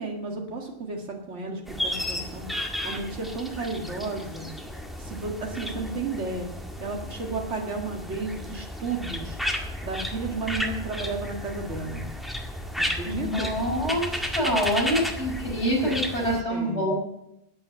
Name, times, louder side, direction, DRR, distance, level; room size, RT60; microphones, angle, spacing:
voice 1, 0.0-4.5 5.0-6.5 6.8-9.4 9.8-12.0 12.8-13.5 15.2-15.4 15.8-15.9 16.5-16.9, right 3 dB, 85° right, 2 dB, 2.3 m, -33 dB
sound 1, 1.7-16.4, equal, ahead, 1.8 m, -33 dB
voice 2, 13.0-16.9, equal, 75° left, -4 dB, 4.7 m, -26 dB
13.5 x 9.1 x 7.0 m, 0.82 s
omnidirectional pair, 1.2 m